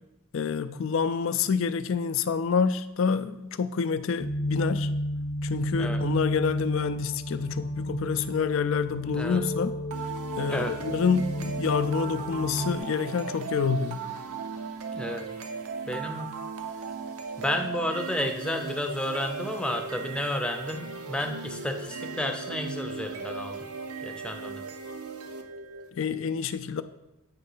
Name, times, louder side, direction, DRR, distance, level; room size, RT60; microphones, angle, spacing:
voice 1, 0.3-4.9 5.4-9.7 10.4-14.1 26.0-26.8, left 6 dB, 60° left, 13 dB, 0.3 m, -27 dB
sound 1, 4.2-12.8, equal, 45° left, 0.8 m, -32 dB
sound 2, 9.9-25.9, right 4 dB, 80° right, 0.7 m, -37 dB
voice 2, 15.8-16.4 17.4-23.7 24.0-24.6, left 1 dB, 5° left, 4 dB, 0.5 m, -31 dB
8.9 x 3.2 x 5.5 m, 0.93 s
head